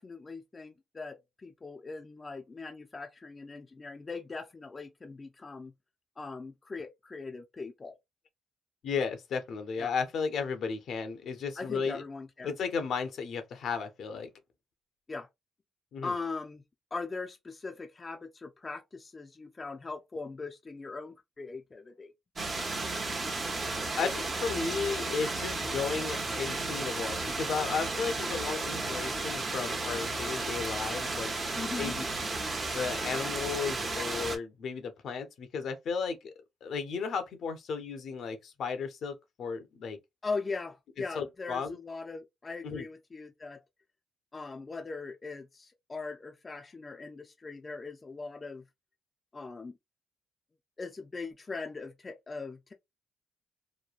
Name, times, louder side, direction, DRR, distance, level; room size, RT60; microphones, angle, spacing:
voice 1, 0.0-5.7 6.2-8.0 9.8-9.9 11.6-12.5 15.1-15.3 16.0-16.6 16.9-22.1 31.5-32.0 40.2-43.6 44.3-48.6 49.3-49.7 50.8-52.7, left 4 dB, 30° left, 0.5 m, -40 dB
voice 2, 8.8-12.0 12.4-14.3 15.9-16.2 24.0-31.3 31.8-32.0 32.7-36.2 36.6-40.0 41.1-41.8 42.6-42.9, left 5 dB, 65° left, 0.7 m, -34 dB
sound 1, 22.4-34.4, right 3 dB, 35° right, 0.8 m, -33 dB
3.1 x 2.2 x 2.4 m
cardioid pair, 90°, 0 cm